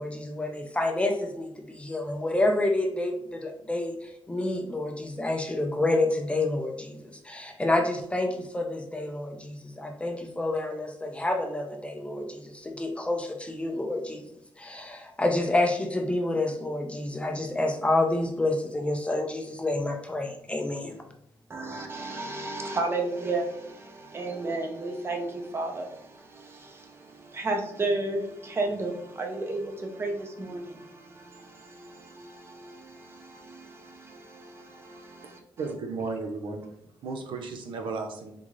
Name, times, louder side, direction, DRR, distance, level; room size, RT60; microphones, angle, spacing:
voice 1, 0.0-14.2 14.6-21.0, left 2 dB, 15° left, 0.4 m, -28 dB
voice 2, 21.5-35.4, right 2 dB, 30° right, 0.7 m, -33 dB
voice 3, 35.6-36.7 37.0-38.3, right 4 dB, 80° right, 0.5 m, -34 dB
3.6 x 2.5 x 3.1 m
wide cardioid pair, 135°, 8 cm